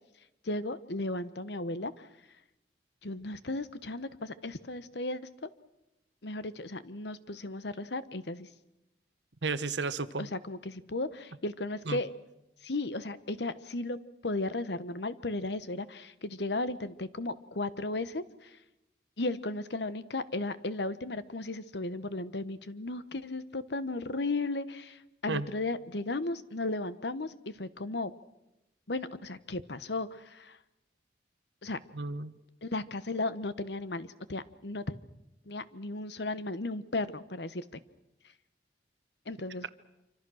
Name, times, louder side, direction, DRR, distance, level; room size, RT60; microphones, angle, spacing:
voice 1, 0.4-2.1 3.0-5.5 6.2-8.5 10.2-12.1 12.6-14.0 14.2-18.5 19.2-28.1 28.9-30.6 31.6-31.8 32.6-35.0 35.5-37.8 39.3-39.7, left 2 dB, 70° left, 14 dB, 1.1 m, -35 dB
voice 2, 9.4-10.3 11.9-12.0 25.3-25.5 31.9-32.3, right 4 dB, 80° right, 14 dB, 1.1 m, -33 dB
26.5 x 25.5 x 6.4 m, 0.93 s
head